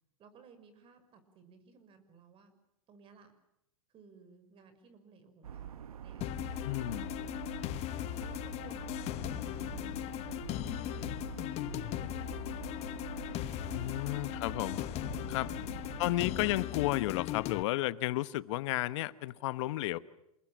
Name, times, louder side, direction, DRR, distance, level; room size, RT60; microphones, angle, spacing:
voice 1, 0.2-2.5 2.9-3.3 3.9-7.8 8.2-10.3 10.6-11.2 11.8-14.6, right 5 dB, 30° right, 11 dB, 5.8 m, -59 dB
sound 1, 5.4-16.7, right 9 dB, 80° right, 1.1 m, -46 dB
sound 2, 6.2-17.6, left 16 dB, 35° left, 1.0 m, -38 dB
voice 2, 6.6-7.1 13.7-14.8 15.3-15.5 16.0-20.0, left 17 dB, 55° left, 15 dB, 1.2 m, -32 dB
28.5 x 21.0 x 7.6 m, 0.85 s
hypercardioid pair, 120°, 18 cm